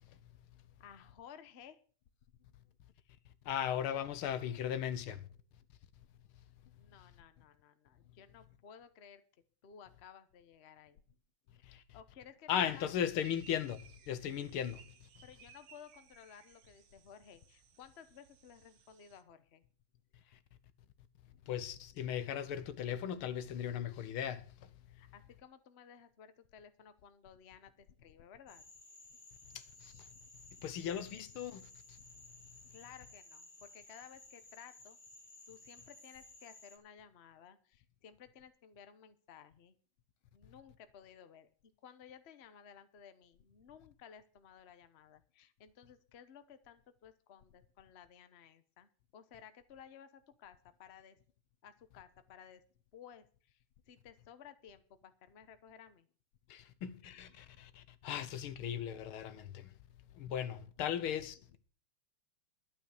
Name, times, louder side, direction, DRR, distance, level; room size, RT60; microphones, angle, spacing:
voice 1, 0.8-1.8 6.7-9.2 9.6-11.0 11.9-12.9 15.2-19.6 24.9-28.6 32.7-35.0 35.5-39.8 40.3-51.2 51.6-52.6 52.9-56.1, left 8 dB, 45° left, 0.9 m, -56 dB
voice 2, 3.5-5.3 11.6-11.8 12.5-14.8 21.5-24.7 29.5-30.1 30.6-32.0 56.5-59.7 60.1-61.6, left 9 dB, 80° left, 1.8 m, -37 dB
sound 1, 13.2-19.2, right 8 dB, 65° right, 1.7 m, -61 dB
Frog, 28.5-36.8, left 2 dB, 25° left, 1.6 m, -57 dB
12.0 x 8.4 x 6.5 m
omnidirectional pair, 2.4 m